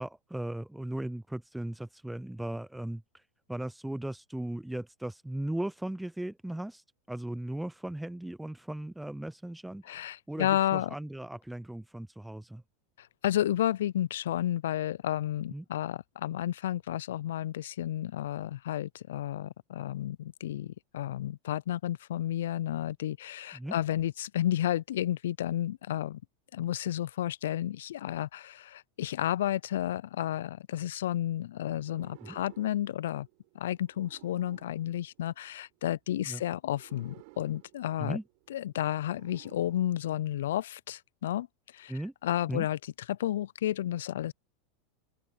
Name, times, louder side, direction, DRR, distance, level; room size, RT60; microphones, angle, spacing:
voice 1, 0.0-10.0 10.3-12.6 15.5-15.6 23.5-23.8 32.2-32.4 36.3-36.4 38.0-38.2 41.9-42.1 42.5-42.7, right 1 dB, 5° right, 0.4 m, -37 dB
voice 2, 9.9-10.9 13.0-26.2 26.5-33.3 33.5-38.2 38.5-41.5 41.7-42.8 43.1-44.3, left 12 dB, 80° left, 0.3 m, -32 dB
sound 1, 31.8-35.9 36.6-40.6, right 30 dB, 60° right, 5.7 m, -57 dB
open air
hypercardioid pair, 100°, 0 cm